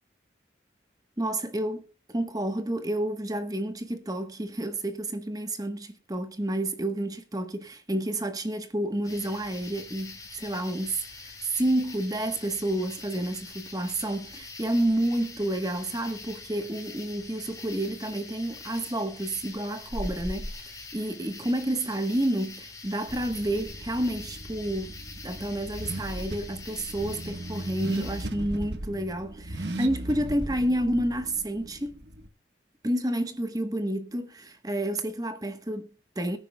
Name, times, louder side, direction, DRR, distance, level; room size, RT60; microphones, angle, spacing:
voice 1, 1.2-24.9 25.2-32.0 32.8-36.4, right 1 dB, 20° right, 1.1 m, -30 dB
sound 1, 9.0-28.2, left 3 dB, 20° left, 4.4 m, -43 dB
Car / Accelerating revving vroom, 23.1-32.3, right 1 dB, 70° right, 1.3 m, -38 dB
23.0 x 10.0 x 2.3 m
head